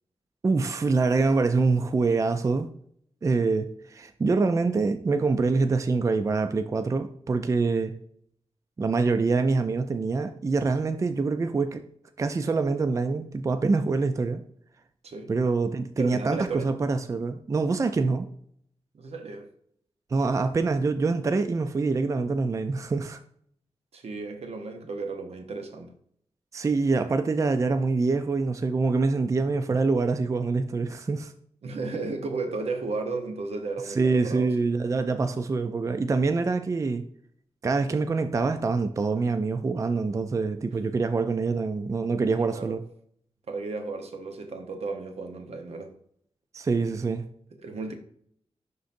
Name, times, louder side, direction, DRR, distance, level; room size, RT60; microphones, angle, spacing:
voice 1, 0.4-2.7 3.2-7.9 8.8-11.8 12.2-14.4 15.3-18.3 20.1-23.2 26.5-31.3 33.9-37.0 37.6-42.8 46.5-47.2, right 4 dB, 30° right, 0.4 m, -25 dB
voice 2, 16.0-16.7 18.9-19.5 23.9-25.9 31.6-34.5 42.5-42.8 43.5-45.9 47.6-47.9, right 3 dB, 80° right, 0.9 m, -34 dB
11.0 x 3.9 x 2.6 m
wide cardioid pair, 145°, 11 cm